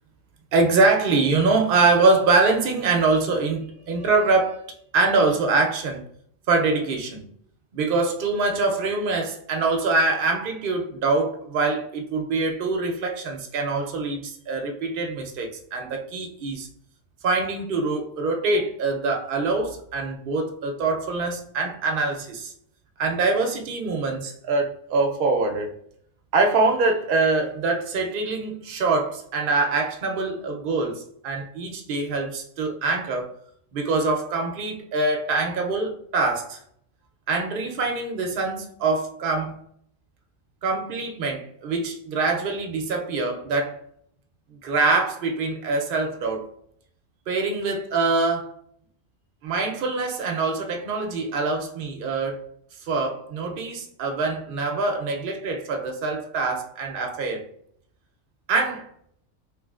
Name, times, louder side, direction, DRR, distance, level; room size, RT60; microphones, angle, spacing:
voice 1, 0.5-6.0 6.5-7.3 7.7-16.7 17.2-22.5 23.0-25.7 26.3-33.3 33.7-36.6 37.3-39.6 40.6-43.8 44.6-46.5 47.3-48.5 49.4-52.4 52.8-57.5 58.5-58.9, right 3 dB, 55° right, 0.7 m, -24 dB
3.1 x 3.0 x 2.3 m
omnidirectional pair, 1.2 m